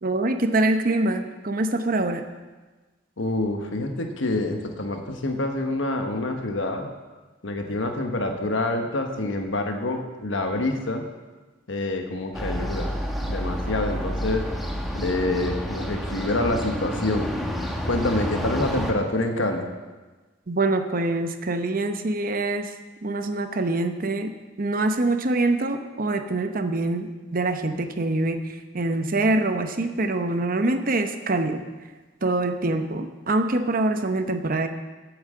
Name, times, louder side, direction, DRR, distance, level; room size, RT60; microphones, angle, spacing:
voice 1, 0.0-2.2 20.5-22.7 23.0-24.3 24.6-28.4 28.7-31.6 32.2-34.7, right 2 dB, 45° right, 8 dB, 0.8 m, -24 dB
voice 2, 3.2-6.9 7.4-11.1 11.7-12.9 13.3-14.5 14.9-17.3 17.9-19.7, left 2 dB, 80° left, 4 dB, 1.2 m, -27 dB
sound 1, 12.3-18.9, equal, ahead, 1.0 m, -29 dB
8.7 x 8.0 x 7.6 m, 1.3 s
head